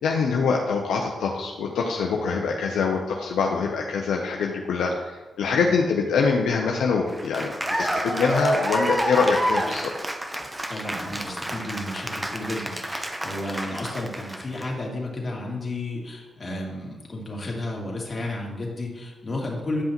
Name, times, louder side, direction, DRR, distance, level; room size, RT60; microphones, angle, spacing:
voice 1, 0.0-9.9, left 5 dB, 80° left, 0 dB, 0.6 m, -24 dB
Cheering / Applause, 7.1-14.6, right 1 dB, 15° right, 0.8 m, -29 dB
voice 2, 10.7-19.8, left 1 dB, 40° left, -2 dB, 2.1 m, -32 dB
9.4 x 5.4 x 3.0 m, 1.2 s
supercardioid pair, 45°, 0 cm